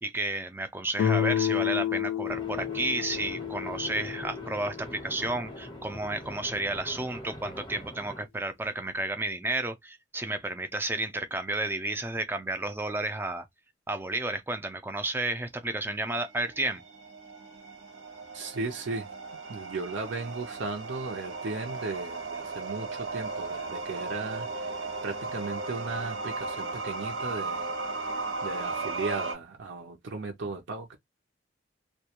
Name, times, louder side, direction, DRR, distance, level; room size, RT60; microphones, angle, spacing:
voice 1, 0.0-13.5 13.9-16.8, right 2 dB, 10° right, 0.3 m, -32 dB
Guitar, 1.0-5.8, left 10 dB, 85° left, 0.3 m, -31 dB
sound 1, 2.3-8.2, equal, 25° left, 0.6 m, -43 dB
sound 2, 16.1-29.3, right 3 dB, 90° right, 1.2 m, -36 dB
voice 2, 18.3-19.1 19.5-27.7 28.0-30.9, right 3 dB, 70° right, 0.6 m, -36 dB
2.2 x 2.2 x 2.9 m
head